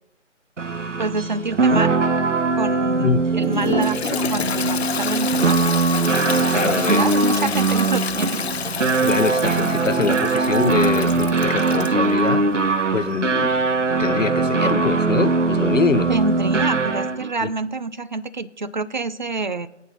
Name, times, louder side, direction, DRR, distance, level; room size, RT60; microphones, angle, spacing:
sound 1, 0.6-17.3, right 3 dB, 75° right, 1.1 m, -21 dB
voice 1, 1.0-2.0 2.5-5.6 6.5-8.4 16.1-19.7, right 3 dB, 40° right, 0.5 m, -27 dB
Toilet flush, 3.4-12.0, left 7 dB, 60° left, 0.5 m, -28 dB
voice 2, 6.5-7.1 9.0-12.5 12.9-13.5 14.0-16.1 17.4-17.5, left 5 dB, 85° left, 0.8 m, -24 dB
19.5 x 8.3 x 4.3 m
figure-of-eight pair, 155°, 37 cm